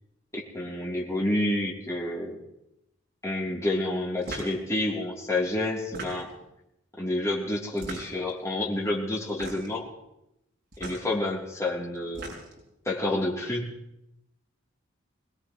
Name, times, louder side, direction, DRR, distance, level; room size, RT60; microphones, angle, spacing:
voice 1, 0.3-2.4 3.2-6.3 7.0-9.9 10.8-12.4 12.9-13.7, left 1 dB, 15° left, -4 dB, 3.3 m, -29 dB
sound 1, 4.2-4.6 5.8-6.5 7.7-8.3 9.3-9.8 10.7-11.0 11.9-12.6, right 2 dB, 55° right, 6.0 m, -39 dB
22.5 x 20.0 x 3.2 m, 0.84 s
head